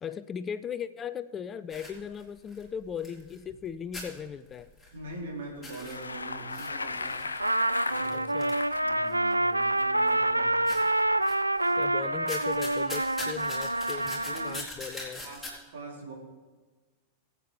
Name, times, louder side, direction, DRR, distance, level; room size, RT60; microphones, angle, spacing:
voice 1, 0.0-4.7 8.1-8.6 11.8-15.2, left 7 dB, 25° left, 14 dB, 0.4 m, -38 dB
sound 1, 1.7-3.7 3.9-5.2 5.5-9.3 9.8-10.3 10.6-11.8 12.2-15.5, left 1 dB, ahead, 3.8 m, -43 dB
voice 2, 4.9-7.3 7.8-8.3 8.8-10.9 14.3-14.9 15.2-16.1, right 2 dB, 60° right, -2 dB, 3.5 m, -43 dB
Bicycle, 5.6-8.9, left 3 dB, 80° left, 0.6 m, -36 dB
Trumpet, 7.4-14.6, right 1 dB, 85° right, 0.4 m, -27 dB
21.5 x 8.3 x 3.5 m, 1.3 s
figure-of-eight pair, 90°, 0 cm